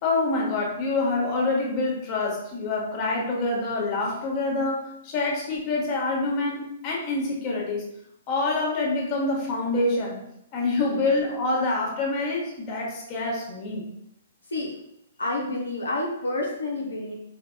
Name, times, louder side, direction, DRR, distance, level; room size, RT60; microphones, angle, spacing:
voice 1, 0.0-7.8 8.3-10.2 10.5-13.9, left 2 dB, 30° left, -2 dB, 1.3 m, -26 dB
voice 2, 14.5-14.8 15.2-17.1, left 2 dB, 70° left, -2 dB, 0.7 m, -29 dB
4.9 x 4.3 x 2.2 m, 0.78 s
figure-of-eight pair, 115°, 0 cm